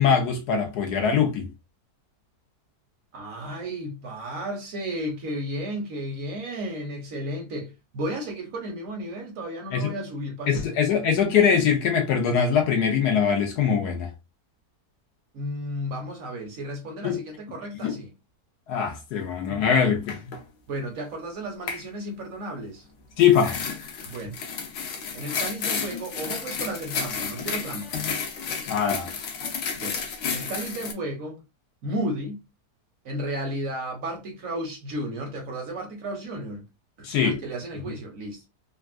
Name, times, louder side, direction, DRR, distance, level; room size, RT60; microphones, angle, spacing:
voice 1, 0.0-1.5 9.7-9.9 10.5-14.1 17.0-17.2 17.8-18.0 18.7-20.4 23.2-23.6 28.7-29.1 37.0-37.4, left 7 dB, 70° left, 1.3 m, -22 dB
voice 2, 3.1-10.7 15.3-18.1 20.7-22.8 24.1-24.4 25.1-28.1 29.8-31.4 31.8-32.4 33.0-36.6 37.0-38.4, right 1 dB, 60° right, 1.1 m, -33 dB
sound 1, 19.7-19.8 20.1-20.4 21.7-21.8 23.2-30.9, left 6 dB, 90° left, 1.4 m, -32 dB
3.5 x 2.4 x 2.3 m
omnidirectional pair, 1.8 m